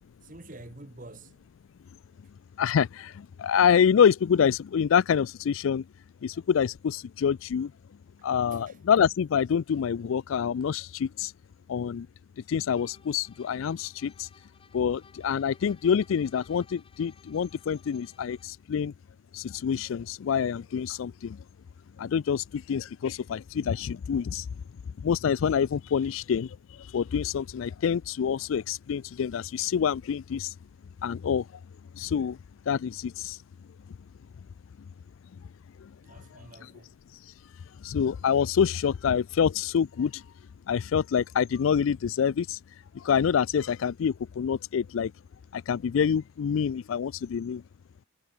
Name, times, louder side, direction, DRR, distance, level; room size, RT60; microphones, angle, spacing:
voice 1, 0.2-1.5 8.2-8.8 26.0-26.1 36.0-36.9, right 2 dB, 40° right, 1.3 m, -48 dB
voice 2, 2.6-5.9 6.2-7.7 8.2-11.3 11.7-12.1 12.5-14.3 14.7-18.9 19.3-21.4 22.0-24.5 25.0-30.5 31.0-31.5 31.9-32.4 32.7-33.4 33.9-34.0 35.8-35.9 37.8-40.2 40.7-42.6 42.9-45.1 45.5-47.6, left 7 dB, 80° left, 0.4 m, -26 dB
sound 1, 12.7-18.6, left 4 dB, 25° left, 1.2 m, -59 dB
head